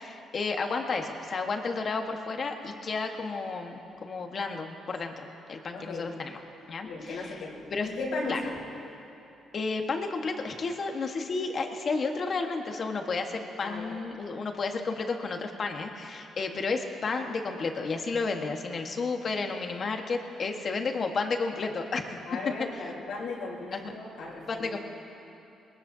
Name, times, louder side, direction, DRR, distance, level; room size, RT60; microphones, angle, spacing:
voice 1, 0.0-6.3 6.7-7.2 7.7-7.9 8.3-8.4 9.5-22.2 23.7-23.9 24.5-24.8, left 4 dB, 45° left, 4 dB, 1.4 m, -32 dB
voice 2, 5.7-6.1 6.8-8.6 13.6-14.0 22.2-24.8, left 3 dB, 90° left, -7 dB, 3.9 m, -36 dB
21.0 x 20.0 x 2.8 m, 2.9 s
cardioid pair, 90°, 0 cm